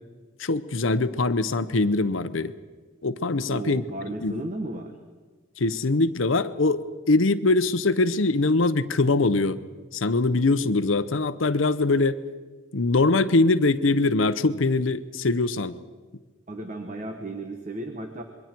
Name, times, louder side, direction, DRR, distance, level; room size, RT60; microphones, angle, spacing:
voice 1, 0.4-2.5 3.0-3.8 4.2-4.3 5.6-9.6 9.9-12.2 12.7-15.8, left 3 dB, 80° left, 13 dB, 0.8 m, -22 dB
voice 2, 3.5-5.0 16.5-18.2, right 1 dB, 35° right, 5 dB, 1.2 m, -34 dB
26.0 x 22.5 x 4.5 m, 1.4 s
head